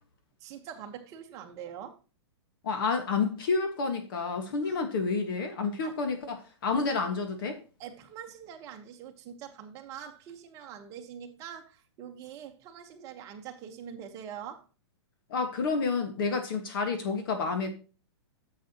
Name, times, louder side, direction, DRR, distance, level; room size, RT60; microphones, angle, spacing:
voice 1, 0.4-2.0 4.6-4.8 5.8-5.9 7.8-14.6, right 8 dB, 20° right, 1.1 m, -44 dB
voice 2, 2.6-7.6 15.3-17.7, left 4 dB, 50° left, 1.5 m, -29 dB
10.0 x 7.5 x 2.9 m
hypercardioid pair, 165°, 14 cm